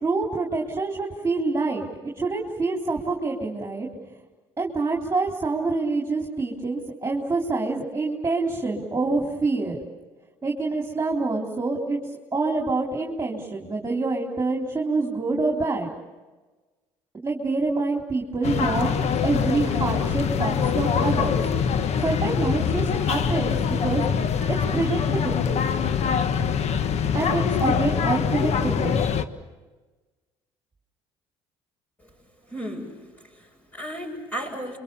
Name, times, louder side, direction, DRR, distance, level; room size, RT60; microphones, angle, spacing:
voice 1, 0.0-3.9 4.6-9.8 10.4-12.0 12.3-15.9 17.1-18.9 19.2-21.4 22.0-24.0 24.5-25.5 27.1-29.0, right 3 dB, 20° right, 0 dB, 3.6 m, -26 dB
sound 1, 18.4-29.3, left 7 dB, 55° left, 1.3 m, -24 dB
voice 2, 32.5-34.8, equal, 15° left, -6 dB, 7.4 m, -35 dB
29.5 x 24.0 x 6.9 m, 1.3 s
supercardioid pair, 70°, 13 cm